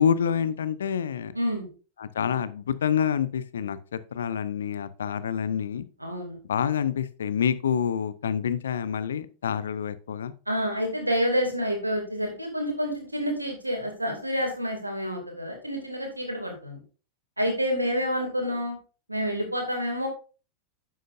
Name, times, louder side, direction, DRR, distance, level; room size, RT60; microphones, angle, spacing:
voice 1, 0.0-1.3 2.0-5.8 6.5-10.3, left 8 dB, 65° left, 15 dB, 0.7 m, -27 dB
voice 2, 1.3-1.7 6.0-6.4 10.5-16.8 17.4-18.8 19.1-20.1, equal, 85° right, 3 dB, 2.5 m, -28 dB
10.5 x 7.6 x 2.6 m, 0.36 s
figure-of-eight pair, 90°, 0 cm